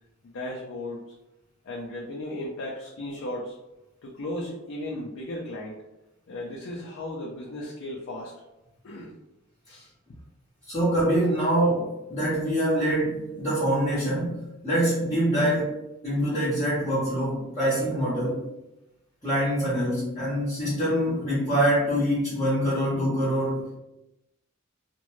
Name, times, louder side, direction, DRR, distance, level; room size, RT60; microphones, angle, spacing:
voice 1, 0.2-1.0 1.6-3.6 4.0-5.8 6.3-8.3 8.8-9.1 9.7-9.9, left 1 dB, 80° left, -3 dB, 0.5 m, -35 dB
voice 2, 10.7-14.3 14.6-18.4 19.2-23.7, equal, 20° left, -10 dB, 0.8 m, -25 dB
2.5 x 2.2 x 3.0 m, 0.94 s
head